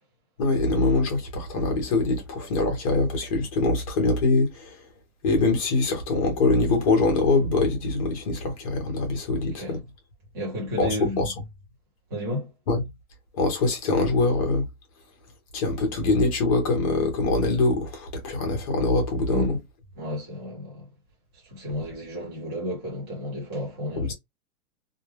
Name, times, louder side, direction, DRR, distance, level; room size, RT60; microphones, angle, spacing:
voice 1, 0.4-4.8 5.2-9.8 10.8-11.3 12.7-12.8 13.4-14.7 15.5-19.6 24.0-24.1, left 3 dB, 25° left, 0.6 m, -23 dB
voice 2, 9.3-9.8 10.3-11.3 12.1-12.5 19.3-19.6 20.0-20.9 21.3-24.1, left 1 dB, 20° right, 0.6 m, -33 dB
2.3 x 2.1 x 3.2 m
hypercardioid pair, 170°, 44 cm